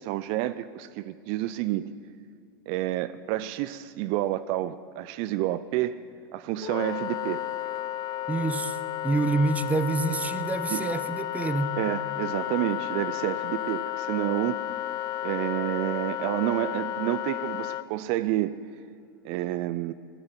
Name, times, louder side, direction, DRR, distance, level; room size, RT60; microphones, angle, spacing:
voice 1, 0.0-1.8 2.7-6.0 6.3-7.4 10.7-10.8 11.8-14.7 15.2-18.5 19.2-19.9, right 14 dB, 50° right, 15 dB, 0.5 m, -29 dB
Wind instrument woodwind instrument, 6.6-17.8, left 14 dB, 35° left, 0.5 m, -32 dB
voice 2, 8.3-8.8 9.0-11.7, right 3 dB, 10° right, 13 dB, 0.8 m, -27 dB
16.0 x 8.8 x 9.7 m, 2.6 s
hypercardioid pair, 105°, 12 cm